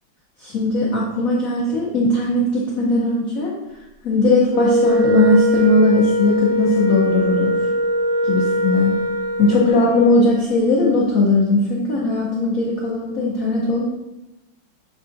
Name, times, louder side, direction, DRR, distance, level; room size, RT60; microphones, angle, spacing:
voice 1, 0.4-3.5 4.0-7.6 8.2-8.9 9.4-13.9, left 2 dB, 85° left, -4 dB, 0.7 m, -18 dB
Wind instrument woodwind instrument, 4.5-10.1, equal, 75° right, 1.3 m, -21 dB
6.4 x 2.4 x 2.5 m, 0.96 s
omnidirectional pair, 2.3 m